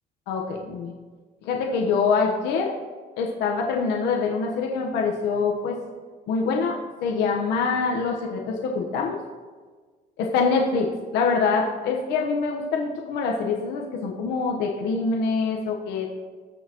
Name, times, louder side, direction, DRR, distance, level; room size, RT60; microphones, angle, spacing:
voice 1, 0.3-0.9 1.4-2.7 3.2-5.8 6.3-9.2 10.2-16.1, left 4 dB, 85° left, 0 dB, 1.2 m, -25 dB
19.0 x 6.5 x 3.0 m, 1.4 s
cardioid pair, 110°, 17 cm